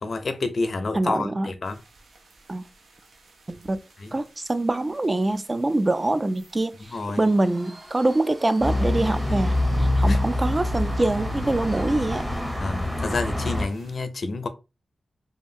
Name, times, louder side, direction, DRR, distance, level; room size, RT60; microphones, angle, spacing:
voice 1, 0.0-1.8 4.0-4.1 6.9-7.2 10.0-10.2 12.6-14.5, left 3 dB, 65° left, 0.4 m, -29 dB
voice 2, 1.0-1.5 2.5-2.6 3.5-3.8 4.1-6.8 7.2-12.2, right 2 dB, 35° right, 0.3 m, -24 dB
sound 1, 1.6-13.9, right 3 dB, 90° right, 0.5 m, -45 dB
Domestic sounds home sounds, 6.9-12.8, right 1 dB, 50° right, 0.9 m, -48 dB
sound 2, 8.6-13.7, left 1 dB, 5° right, 0.7 m, -25 dB
2.7 x 2.4 x 2.6 m
cardioid pair, 50°, 0 cm